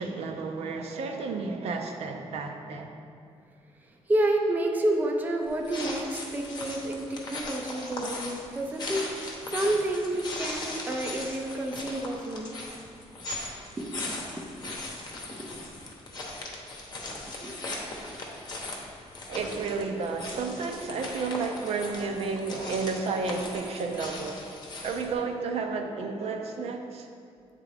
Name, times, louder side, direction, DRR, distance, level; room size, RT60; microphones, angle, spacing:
voice 1, 0.0-2.9 19.3-24.4 24.8-27.1, right 4 dB, 65° right, 4 dB, 0.5 m, -32 dB
voice 2, 3.8-12.6 13.8-14.8 15.3-15.6 17.4-17.6, right 1 dB, 15° right, 1 dB, 0.4 m, -30 dB
sound 1, 5.5-25.1, left 2 dB, 40° left, 0.8 m, -39 dB
8.2 x 3.7 x 3.3 m, 2.3 s
cardioid pair, 155°, 11 cm